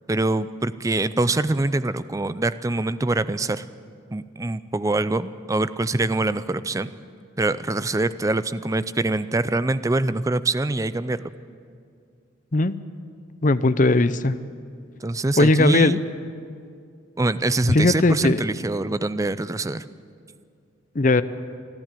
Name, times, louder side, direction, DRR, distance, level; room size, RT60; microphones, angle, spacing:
voice 1, 0.1-3.6 4.1-6.9 7.4-11.3 15.0-16.0 17.2-19.9, right 2 dB, 15° right, 14 dB, 0.4 m, -24 dB
voice 2, 13.4-14.3 15.4-15.9 17.7-18.4 20.9-21.2, left 2 dB, 40° left, 13 dB, 0.6 m, -18 dB
27.5 x 10.5 x 9.1 m, 2.3 s
head